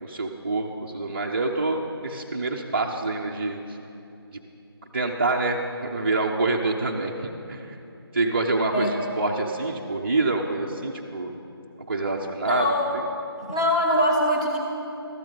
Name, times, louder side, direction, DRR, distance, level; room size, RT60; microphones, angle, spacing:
voice 1, 0.0-3.8 4.9-7.1 7.5-7.8 8.1-11.3 11.9-12.7, right 2 dB, 30° right, -2 dB, 0.5 m, -26 dB
voice 2, 12.4-12.9 13.4-14.6, equal, 15° left, -1 dB, 1.1 m, -23 dB
13.0 x 13.0 x 3.8 m, 2.8 s
figure-of-eight pair, 160°, 13 cm